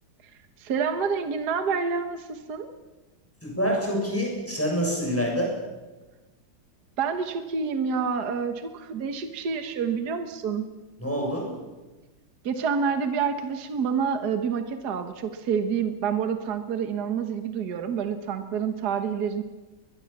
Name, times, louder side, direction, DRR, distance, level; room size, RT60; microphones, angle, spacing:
voice 1, 0.6-2.7 7.0-10.7 12.4-19.4, right 6 dB, 60° right, 8 dB, 1.8 m, -28 dB
voice 2, 3.4-5.6 11.0-11.5, equal, 5° left, -1 dB, 7.1 m, -26 dB
22.5 x 21.5 x 7.3 m, 1.2 s
omnidirectional pair, 2.0 m